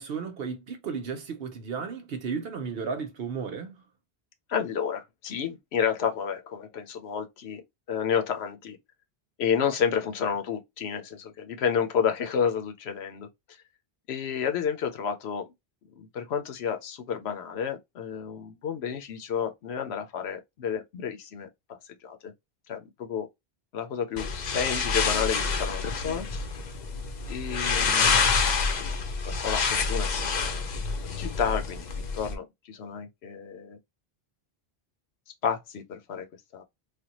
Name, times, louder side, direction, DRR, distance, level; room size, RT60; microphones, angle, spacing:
voice 1, 0.0-3.8, right 5 dB, 70° right, 0.9 m, -34 dB
voice 2, 4.5-8.8 9.4-13.3 14.1-15.5 16.0-21.5 21.9-22.3 22.7-23.3 23.7-26.5 27.2-28.9 29.2-30.6 31.2-33.8 35.4-36.3 36.5-36.6, left 7 dB, 85° left, 0.9 m, -31 dB
sound 1, 24.2-32.4, left 5 dB, 50° left, 0.6 m, -27 dB
3.3 x 2.2 x 2.9 m
omnidirectional pair, 1.1 m